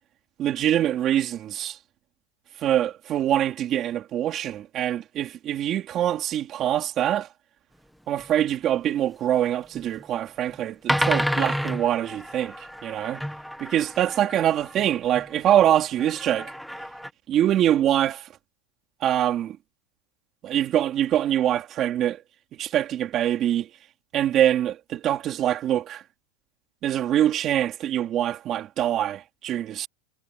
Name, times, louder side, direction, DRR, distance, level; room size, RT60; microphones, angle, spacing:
voice 1, 0.4-1.8 2.6-7.3 8.1-12.5 12.8-13.2 13.6-16.5 17.3-18.3 19.0-19.6 20.4-22.2 22.6-23.7 24.1-26.0 26.8-29.9, right 11 dB, 25° right, 3.8 m, -24 dB
sound 1, 8.2-8.3 9.8-10.0 10.5-10.6 10.9-15.3 16.0-17.1, equal, ahead, 1.2 m, -30 dB
supercardioid pair, 170°, 0 cm